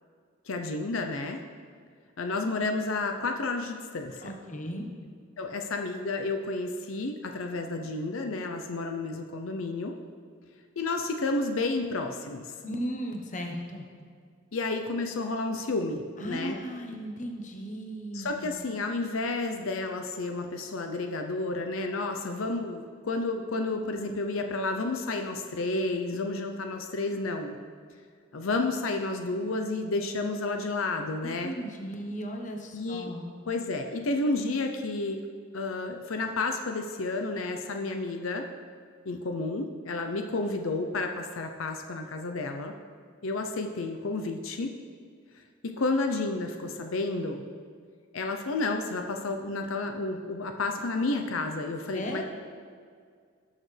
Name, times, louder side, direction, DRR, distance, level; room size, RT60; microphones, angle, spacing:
voice 1, 0.5-1.4 2.2-4.3 5.4-10.0 10.8-12.5 14.5-16.6 18.1-27.6 28.3-31.5 32.7-33.1 33.5-35.2 35.5-38.5 39.1-42.7 43.2-44.7 45.4-47.4 48.1-52.2, left 3 dB, 85° left, 5 dB, 0.7 m, -31 dB
voice 2, 4.2-4.9 12.6-13.9 16.2-18.5 31.4-33.3 51.9-52.2, equal, 35° left, 2 dB, 1.1 m, -36 dB
18.0 x 6.6 x 3.3 m, 2.1 s
head